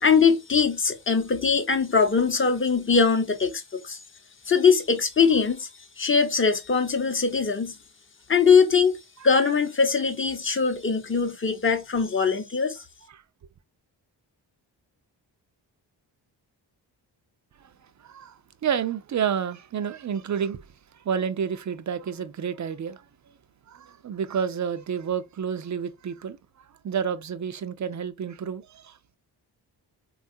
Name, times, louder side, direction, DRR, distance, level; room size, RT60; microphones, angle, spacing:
voice 1, 0.0-4.0 4.5-5.7 6.0-7.8 8.3-8.9 9.2-12.8, left 5 dB, 25° left, 0.8 m, -21 dB
voice 2, 18.0-20.6 21.0-23.0 23.7-26.4 26.8-28.9, right 7 dB, 40° right, 0.5 m, -30 dB
3.4 x 2.3 x 2.6 m
supercardioid pair, 50°, 48 cm